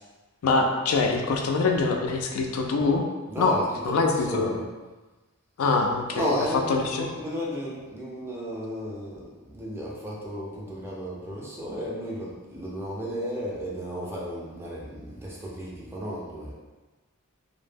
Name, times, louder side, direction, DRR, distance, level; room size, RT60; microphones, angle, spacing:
voice 1, 0.4-3.0 3.4-3.6 3.9-4.5 5.6-6.3 6.7-7.1, left 3 dB, 70° left, 2 dB, 0.3 m, -24 dB
voice 2, 3.3-3.6 3.9-4.0 4.3-4.6 6.1-16.5, equal, 10° right, -5 dB, 0.4 m, -33 dB
2.0 x 2.0 x 3.3 m, 1.2 s
head